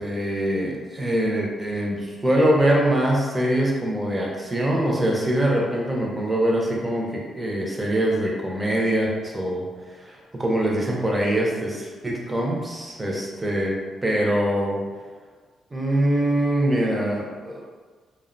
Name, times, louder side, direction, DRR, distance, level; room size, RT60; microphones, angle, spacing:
voice 1, 0.0-13.8 14.0-14.8 15.7-17.6, right 1 dB, 20° right, -2 dB, 0.6 m, -23 dB
2.4 x 2.1 x 2.5 m, 1.4 s
supercardioid pair, 55°, 0 cm